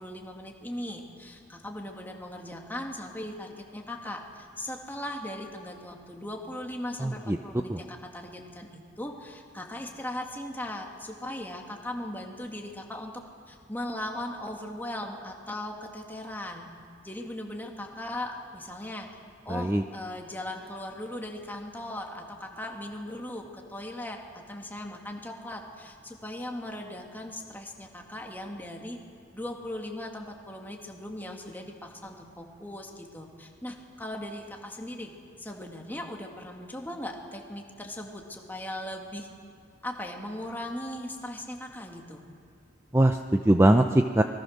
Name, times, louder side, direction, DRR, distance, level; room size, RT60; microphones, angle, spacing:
voice 1, 0.0-13.1 13.5-16.7 17.0-19.1 19.4-29.0 29.3-39.3 39.8-42.2, left 1 dB, 10° left, 1 dB, 2.2 m, -38 dB
voice 2, 7.0-7.4 7.7-7.8 19.5-19.8 42.9-44.2, right 1 dB, 15° right, 6 dB, 0.6 m, -22 dB
27.0 x 21.0 x 6.6 m, 2.3 s
head